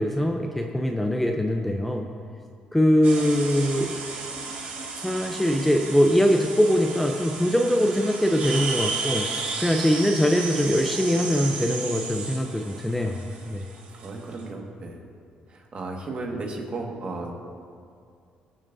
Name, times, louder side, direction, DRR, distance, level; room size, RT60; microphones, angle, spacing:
voice 1, 0.0-2.1 2.7-3.9 5.0-9.3 9.6-13.2 13.5-13.6, equal, 5° left, 3 dB, 0.6 m, -22 dB
sound 1, 3.0-14.4, right 4 dB, 60° right, 1.9 m, -34 dB
voice 2, 13.9-15.0 15.5-17.3, right 3 dB, 40° right, 0 dB, 1.7 m, -34 dB
21.0 x 7.2 x 2.7 m, 2.3 s
cardioid pair, 115°, 3 cm